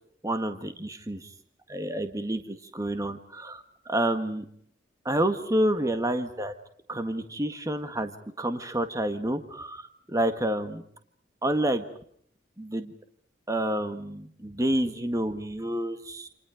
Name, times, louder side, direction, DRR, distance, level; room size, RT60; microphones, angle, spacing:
voice 1, 0.2-1.3 1.7-4.5 5.1-6.5 6.9-8.1 8.4-10.8 11.4-11.8 12.6-12.9 13.5-16.3, right 1 dB, 20° right, 8 dB, 1.7 m, -29 dB
29.0 x 28.0 x 5.1 m, 0.62 s
head